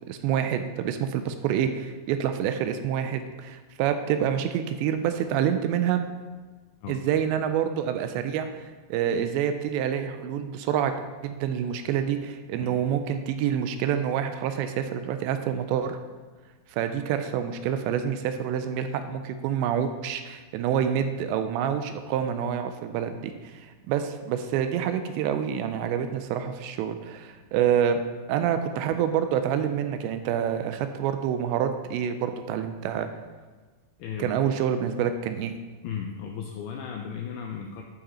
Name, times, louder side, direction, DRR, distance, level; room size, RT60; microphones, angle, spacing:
voice 1, 0.1-6.0 6.9-8.5 8.9-10.9 11.2-16.0 16.7-28.0 28.3-33.1 34.2-35.5, right 9 dB, 85° right, 8 dB, 2.7 m, -27 dB
voice 2, 34.0-34.4 35.8-37.8, left 7 dB, 85° left, 2 dB, 2.2 m, -35 dB
12.0 x 4.9 x 4.3 m, 1.3 s
omnidirectional pair, 5.2 m